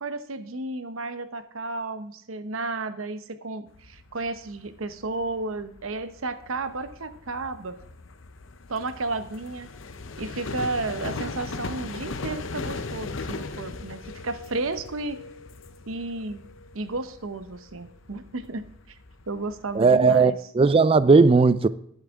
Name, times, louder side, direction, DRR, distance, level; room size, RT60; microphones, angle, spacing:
voice 1, 0.0-7.8 8.7-9.7 10.2-15.2 15.9-16.4 16.7-19.0 19.3-20.4, right 3 dB, 80° right, 0.9 m, -33 dB
sound 1, 3.7-20.2, left 3 dB, 70° left, 0.8 m, -39 dB
voice 2, 19.8-21.7, right 4 dB, 25° right, 0.3 m, -17 dB
11.5 x 10.5 x 3.6 m
head